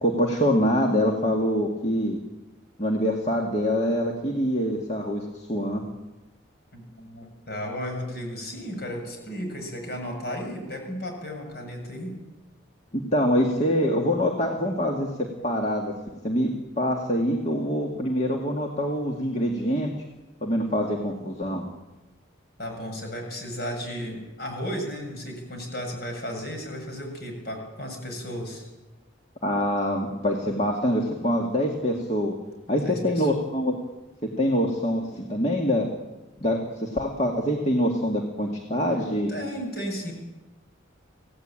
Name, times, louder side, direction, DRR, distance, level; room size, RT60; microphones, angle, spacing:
voice 1, 0.0-2.2 2.8-5.8 12.9-15.1 15.4-15.9 16.2-19.9 20.4-21.6 29.4-32.4 32.7-33.7 34.4-35.9 36.4-39.3, equal, 35° left, 1 dB, 2.1 m, -25 dB
voice 2, 6.7-12.2 22.6-28.7 32.7-33.3 39.3-40.1, equal, 50° left, 2 dB, 7.2 m, -34 dB
26.0 x 17.0 x 8.8 m, 1.1 s
head